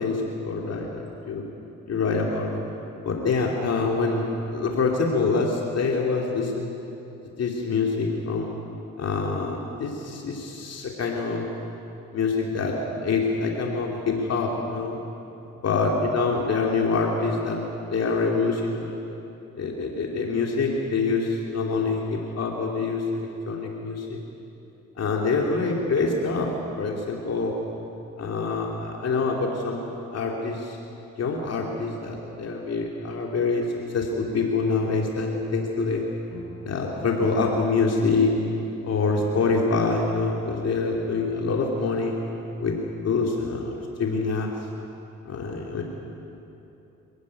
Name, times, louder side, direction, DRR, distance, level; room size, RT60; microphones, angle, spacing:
voice 1, 0.0-1.4 1.9-2.6 3.0-6.7 7.4-8.6 9.0-11.5 12.1-15.0 15.6-19.0 19.5-24.2 25.0-27.6 28.2-29.9 30.1-30.8 31.2-36.1 36.6-38.3 38.8-42.2 42.6-42.8 43.0-44.5 45.2-45.8, left 4 dB, 55° left, 0 dB, 2.8 m, -25 dB
sound 1, 36.3-38.7 39.0-41.3, left 2 dB, 75° left, 5.3 m, -45 dB
26.5 x 15.5 x 9.7 m, 2.9 s
cardioid pair, 90°, 30 cm